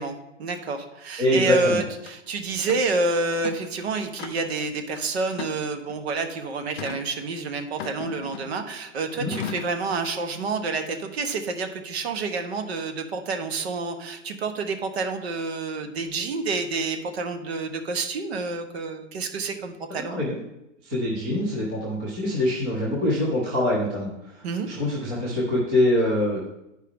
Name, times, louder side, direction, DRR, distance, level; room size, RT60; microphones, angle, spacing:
voice 1, 0.0-20.2 24.4-24.7, right 3 dB, 55° right, 7 dB, 1.2 m, -28 dB
voice 2, 1.2-1.8 9.2-9.3 20.1-20.4 20.8-26.5, left 1 dB, 10° right, -5 dB, 0.3 m, -24 dB
sound 1, 2.1-2.2 2.7-2.9 3.3-3.7 4.2-4.6 5.3-6.0 6.8-7.1 7.8-8.7 9.3-9.8, left 8 dB, 55° left, 0.6 m, -36 dB
10.0 x 4.7 x 3.6 m, 0.90 s
hypercardioid pair, 155°, 37 cm